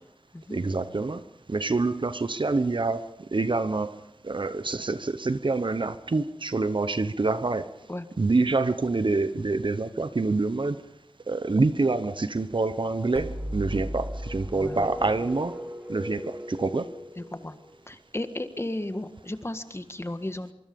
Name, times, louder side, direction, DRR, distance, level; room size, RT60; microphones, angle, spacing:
voice 1, 0.5-1.2 1.5-7.7 8.2-10.8 11.3-15.6 15.9-16.9, right 3 dB, 55° right, 1.0 m, -26 dB
sound 1, 13.1-17.9, equal, 20° right, 4.7 m, -36 dB
voice 2, 14.5-14.9 17.4-17.6 17.9-20.5, left 1 dB, 25° left, 1.6 m, -34 dB
24.5 x 24.0 x 5.4 m
wide cardioid pair, 75°, 10 cm